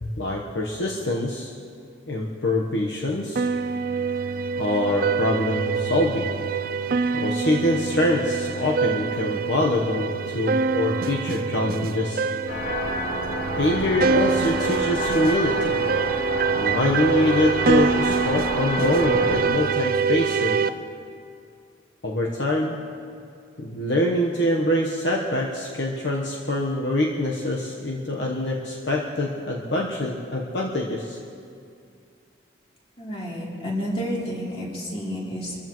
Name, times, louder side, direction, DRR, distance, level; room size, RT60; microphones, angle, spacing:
voice 1, 0.0-1.5 2.1-3.5 4.6-6.4 7.1-12.3 13.5-15.8 16.5-20.6 22.0-22.8 23.6-31.2, left 1 dB, 65° left, -2 dB, 1.1 m, -24 dB
sound 1, 3.4-20.7, right 5 dB, 50° right, 0.4 m, -25 dB
sound 2, 12.5-19.4, left 1 dB, 90° left, 4.8 m, -29 dB
voice 2, 33.0-35.6, equal, 30° left, -5 dB, 3.3 m, -30 dB
25.0 x 14.5 x 3.1 m, 2.4 s
head